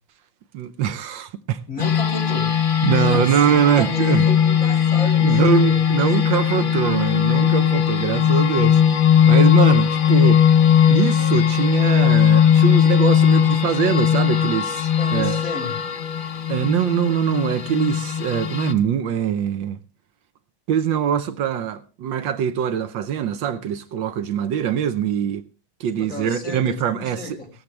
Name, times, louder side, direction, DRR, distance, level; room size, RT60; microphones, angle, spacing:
voice 1, 0.5-1.6 2.8-4.2 5.2-8.8 9.3-10.4 10.9-15.4 16.5-19.8 20.7-25.4 25.8-27.4, right 8 dB, 75° right, 1.5 m, -23 dB
voice 2, 1.7-2.6 3.0-5.8 15.0-15.8 26.0-27.5, left 2 dB, 40° left, 5.0 m, -33 dB
sound 1, 1.8-18.7, left 8 dB, 70° left, 0.5 m, -18 dB
17.5 x 13.0 x 3.3 m
omnidirectional pair, 2.1 m